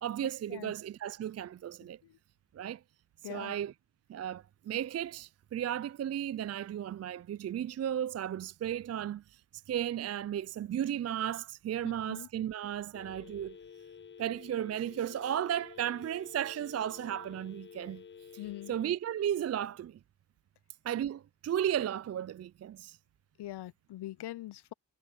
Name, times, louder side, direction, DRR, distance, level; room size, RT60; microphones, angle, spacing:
voice 1, 0.0-2.0 2.5-2.8 3.3-3.7 4.1-9.4 9.7-13.6 14.2-18.0 18.7-20.0 20.8-23.0, right 10 dB, 40° right, 0.4 m, -34 dB
voice 2, 3.2-3.5 11.8-12.3 18.4-18.8 23.4-24.7, left 15 dB, 70° left, 0.6 m, -43 dB
Telephone, 12.9-18.9, left 7 dB, 25° left, 0.6 m, -51 dB
supercardioid pair, 45°, 43 cm